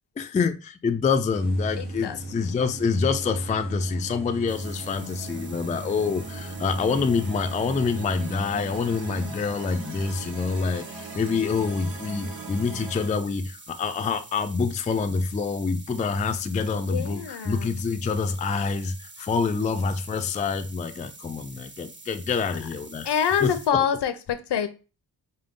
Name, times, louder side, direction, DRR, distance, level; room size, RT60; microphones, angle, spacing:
voice 1, 0.2-23.1 23.4-23.8, left 5 dB, 20° left, 0.3 m, -26 dB
sound 1, 1.3-9.5, right 2 dB, 65° right, 1.4 m, -37 dB
voice 2, 1.8-2.2 16.9-17.7 23.0-24.7, left 8 dB, 70° left, 0.7 m, -25 dB
sound 2, 3.1-13.1, right 4 dB, 85° right, 1.0 m, -41 dB
sound 3, 4.5-23.7, right 3 dB, 25° right, 0.7 m, -47 dB
5.2 x 2.2 x 3.6 m
cardioid pair, 80°, 44 cm